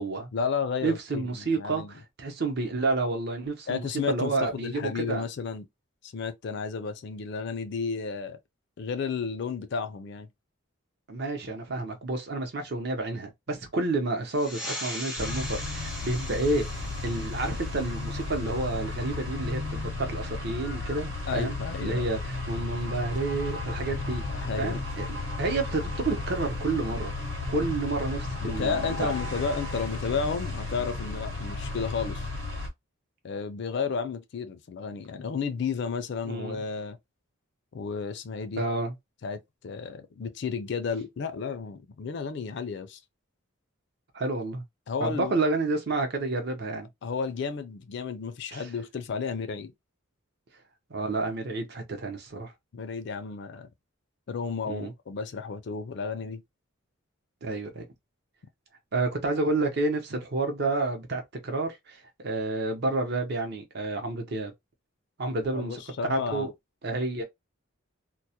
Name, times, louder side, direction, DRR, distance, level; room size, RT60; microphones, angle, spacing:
voice 1, 0.3-1.9 3.7-5.7 6.0-8.4 8.8-10.3 21.3-22.1 23.9-24.8 28.4-32.3 33.2-37.0 37.7-38.6 39.2-43.0 44.9-45.4 47.0-49.7 52.7-53.7 54.3-56.4 65.5-66.5, left 5 dB, 55° left, 0.4 m, -32 dB
voice 2, 0.8-5.2 11.1-24.2 24.6-27.1 27.5-29.1 36.3-36.6 38.6-38.9 44.1-44.6 45.0-46.9 48.5-48.7 50.9-52.5 54.7-54.9 57.4-57.8 58.9-64.5 65.2-65.8 66.1-66.5 66.8-67.2, right 2 dB, 50° right, 0.7 m, -30 dB
sound 1, 14.3-19.4, left 1 dB, 5° right, 0.5 m, -40 dB
sound 2, 15.2-32.7, left 3 dB, 90° right, 1.1 m, -34 dB
2.2 x 2.0 x 2.7 m
head